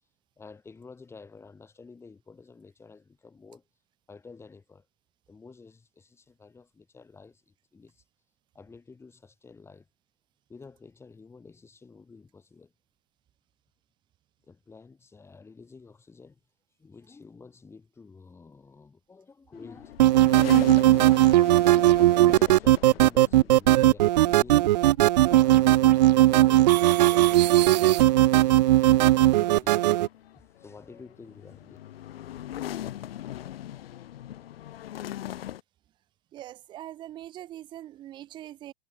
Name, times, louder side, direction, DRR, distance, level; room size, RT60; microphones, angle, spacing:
voice 1, 0.4-3.6 4.1-4.9 5.3-8.0 8.5-9.9 10.5-12.7 14.4-16.4 16.8-20.1 20.6-21.7 22.2-24.7 25.2-29.8 30.3-31.8, left 4 dB, 10° left, 6.4 m, -50 dB
sound 1, 19.5-35.6, left 12 dB, 65° left, 7.1 m, -41 dB
sound 2, 20.0-30.1, right 15 dB, 45° right, 0.4 m, -18 dB
voice 2, 36.3-38.7, right 13 dB, 15° right, 0.8 m, -42 dB
hypercardioid pair, 160°, 32 cm